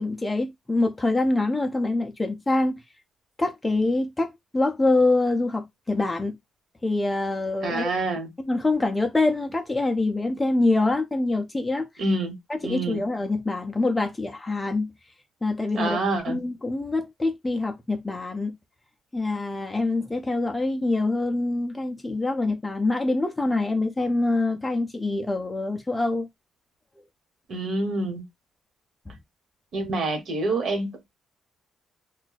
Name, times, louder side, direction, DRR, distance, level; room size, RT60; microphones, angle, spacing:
voice 1, 0.0-2.8 3.4-6.4 6.8-7.9 8.4-11.9 12.5-14.9 15.4-16.0 16.3-18.6 19.1-26.3 29.1-29.2, left 2 dB, 10° left, 0.4 m, -25 dB
voice 2, 7.6-8.3 12.0-12.3 12.6-13.0 15.8-16.4 27.5-28.2 29.7-31.1, right 2 dB, 50° right, 1.1 m, -27 dB
2.6 x 2.2 x 3.9 m
cardioid pair, 175°, 0 cm